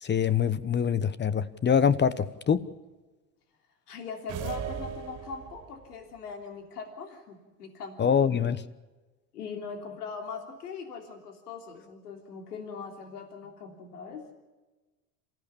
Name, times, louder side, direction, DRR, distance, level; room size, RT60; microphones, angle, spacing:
voice 1, 0.0-2.6 8.0-8.6, left 7 dB, 25° left, 17 dB, 1.2 m, -24 dB
voice 2, 3.9-8.1 9.3-14.4, left 5 dB, 80° left, 4 dB, 3.2 m, -41 dB
sound 1, 4.3-5.8, right 8 dB, 40° right, 2.9 m, -37 dB
28.5 x 15.5 x 7.1 m, 1.2 s
hypercardioid pair, 75°, 46 cm